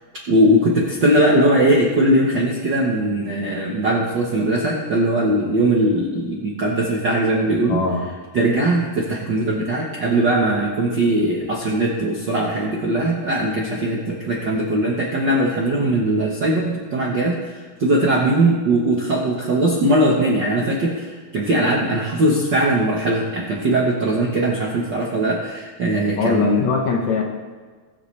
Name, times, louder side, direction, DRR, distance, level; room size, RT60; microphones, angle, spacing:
voice 1, 0.3-7.8 8.3-26.7, right 1 dB, 60° right, -3 dB, 1.2 m, -20 dB
voice 2, 7.7-8.1 26.2-27.2, left 4 dB, 65° left, 1 dB, 2.1 m, -21 dB
20.0 x 7.9 x 3.3 m, 1.5 s
omnidirectional pair, 3.9 m